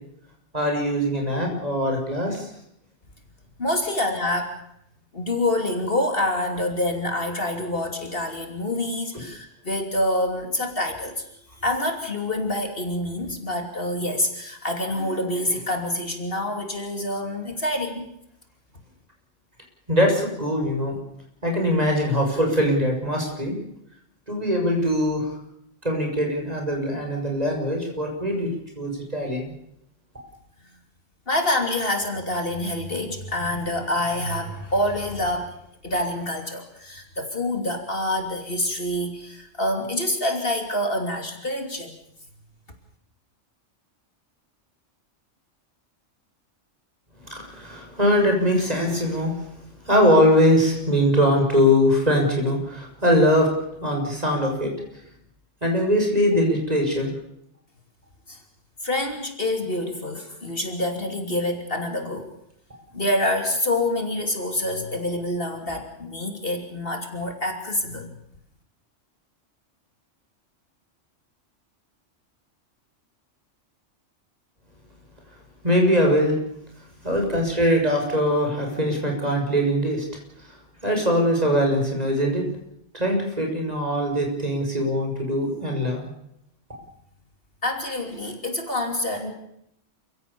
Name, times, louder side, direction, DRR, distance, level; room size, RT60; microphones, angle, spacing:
voice 1, 0.5-2.5 19.9-21.0 21.4-23.6 24.3-25.3 25.8-29.5 47.3-49.4 49.9-53.5 53.8-54.7 55.6-57.1 75.6-76.4 77.0-80.0 80.8-82.5 82.9-86.1, equal, 30° right, 2 dB, 6.7 m, -22 dB
voice 2, 3.6-4.6 5.1-11.3 11.6-18.1 31.3-35.6 35.8-41.9 58.3-58.4 58.8-62.3 62.9-68.1 87.6-89.3, left 1 dB, 50° left, 5 dB, 3.2 m, -26 dB
28.5 x 16.5 x 6.9 m, 0.77 s
omnidirectional pair, 1.2 m